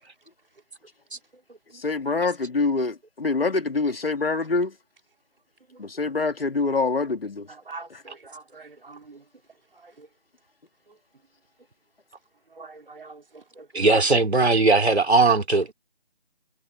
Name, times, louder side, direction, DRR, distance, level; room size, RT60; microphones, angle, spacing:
voice 1, 1.7-4.7 5.8-7.5 7.9-8.0, left 3 dB, 65° left, 2.3 m, -25 dB
voice 2, 7.7-9.2 12.6-13.2 13.6-13.7, right 3 dB, 60° right, 4.1 m, -43 dB
voice 3, 13.7-15.7, right 3 dB, 85° right, 3.2 m, -19 dB
figure-of-eight pair, 165°, 32 cm